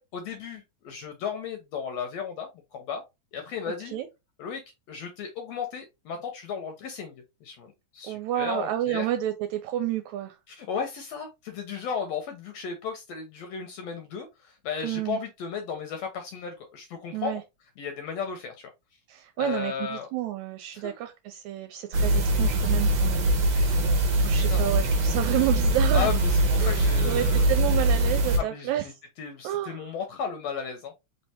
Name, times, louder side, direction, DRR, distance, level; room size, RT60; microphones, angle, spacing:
voice 1, 0.0-3.0 3.3-4.0 4.4-4.6 4.9-9.1 10.5-17.4 17.8-18.7 19.4-20.1 20.7-20.9 23.4-24.0 24.4-24.6 25.9-27.5 28.4-28.9 29.2-30.9, left 6 dB, 75° left, 1.7 m, -35 dB
voice 2, 8.0-10.3 14.8-15.2 17.1-17.4 19.1-23.3 24.2-26.1 26.6-28.9 29.4-29.8, right 13 dB, 80° right, 1.8 m, -30 dB
sound 1, 21.9-28.4, right 1 dB, 60° right, 1.2 m, -22 dB
4.4 x 3.2 x 2.8 m
omnidirectional pair, 3.5 m